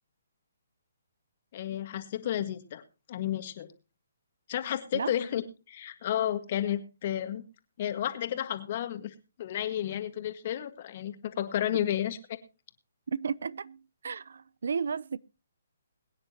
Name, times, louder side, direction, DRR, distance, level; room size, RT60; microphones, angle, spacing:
voice 1, 1.5-2.8 3.1-3.7 4.5-5.4 5.7-7.4 7.8-12.4, left 11 dB, 45° left, 1.7 m, -32 dB
voice 2, 13.1-15.2, right 6 dB, 70° right, 0.6 m, -33 dB
22.0 x 9.7 x 2.9 m
hypercardioid pair, 140°, 0 cm